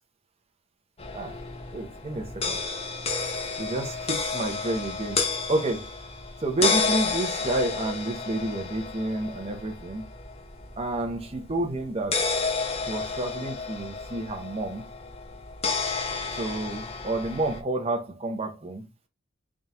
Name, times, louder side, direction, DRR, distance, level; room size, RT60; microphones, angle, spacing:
sound 1, 1.0-17.6, left 4 dB, 30° left, 0.6 m, -31 dB
voice 1, 1.7-2.6 3.6-5.2 5.5-5.9 6.4-10.1 10.8-12.2 12.9-14.9 16.3-18.9, right 2 dB, 30° right, 0.8 m, -30 dB
3.7 x 2.5 x 4.1 m
head